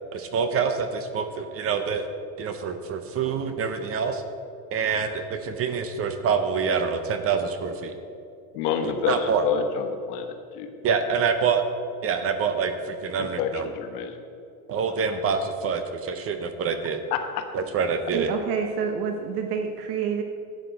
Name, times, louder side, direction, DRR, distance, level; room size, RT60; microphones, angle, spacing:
voice 1, 0.1-2.0 2.4-4.2 4.7-7.9 8.8-9.4 10.8-11.6 12.0-13.7 14.7-17.0 17.5-18.3, right 6 dB, 30° right, 8 dB, 0.7 m, -26 dB
voice 2, 8.5-10.7 13.2-14.2 17.1-17.4, left 7 dB, 85° left, 6 dB, 1.3 m, -28 dB
voice 3, 18.1-20.2, right 6 dB, 85° right, 4 dB, 1.1 m, -28 dB
12.5 x 8.4 x 4.0 m, 2.6 s
cardioid pair, 145°, 45 cm